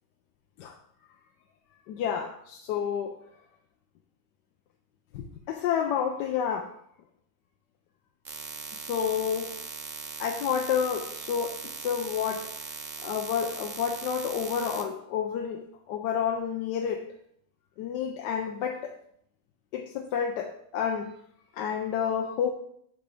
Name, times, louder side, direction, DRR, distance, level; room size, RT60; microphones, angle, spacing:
voice 1, 1.9-3.2 5.1-6.7 8.7-9.5 10.2-12.5 13.0-17.1 17.8-19.0 19.7-21.1 21.5-22.5, left 8 dB, 85° left, 1.2 m, -30 dB
sound 1, 8.3-14.8, right 5 dB, 55° right, 1.0 m, -39 dB
10.5 x 4.8 x 3.4 m
omnidirectional pair, 1.8 m